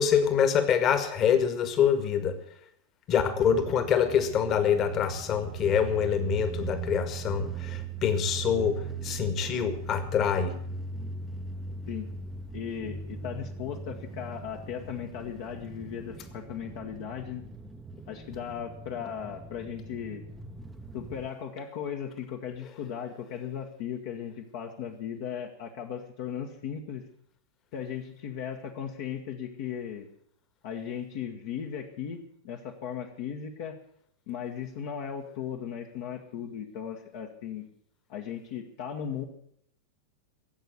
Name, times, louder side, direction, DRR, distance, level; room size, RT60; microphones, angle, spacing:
voice 1, 0.0-2.4 3.1-10.5, left 7 dB, 35° left, 9 dB, 1.8 m, -25 dB
sound 1, 3.4-21.3, right 4 dB, 10° right, 1.0 m, -40 dB
voice 2, 12.5-17.4 18.1-20.2 20.9-27.0 27.7-30.1 30.6-32.2 32.4-33.8 34.3-37.7 38.1-39.3, left 8 dB, 50° left, 1 dB, 1.5 m, -37 dB
16.0 x 8.1 x 8.2 m, 0.68 s
figure-of-eight pair, 90°, 0 cm